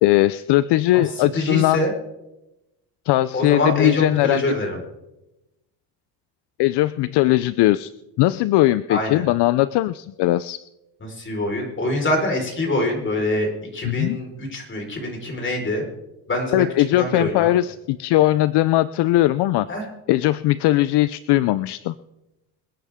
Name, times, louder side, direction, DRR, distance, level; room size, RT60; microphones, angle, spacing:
voice 1, 0.0-1.9 3.1-4.7 6.6-7.9 8.2-10.6 13.8-14.2 16.5-19.7 20.1-21.9, left 16 dB, 65° left, 15 dB, 0.6 m, -19 dB
voice 2, 1.3-1.9 3.3-4.8 8.9-9.2 11.0-15.8 16.3-16.7 16.9-17.5 19.7-19.8, left 1 dB, 25° left, 1 dB, 4.6 m, -24 dB
26.5 x 10.0 x 3.7 m, 0.95 s
cardioid pair, 120°, 45 cm